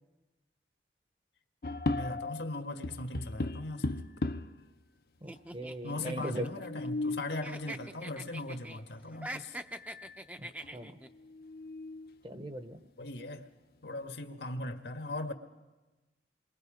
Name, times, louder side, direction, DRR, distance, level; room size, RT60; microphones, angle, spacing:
sound 1, 1.6-2.5 2.8-4.6 5.4-5.5 5.7-5.8 6.5-7.4 9.1-9.2 9.7-10.2 10.6-10.7 11.2-12.1, left 2 dB, 60° left, 0.8 m, -36 dB
voice 1, 1.9-4.0 5.8-9.6 13.0-13.5 13.8-15.3, left 2 dB, 80° left, 1.7 m, -39 dB
voice 2, 5.2-6.4 10.4-10.9 12.2-12.8, right 1 dB, 30° right, 0.9 m, -40 dB
sound 2, 5.3-7.1 7.4-8.8 9.1-11.1, right 1 dB, 10° right, 0.6 m, -43 dB
28.0 x 22.5 x 5.1 m
head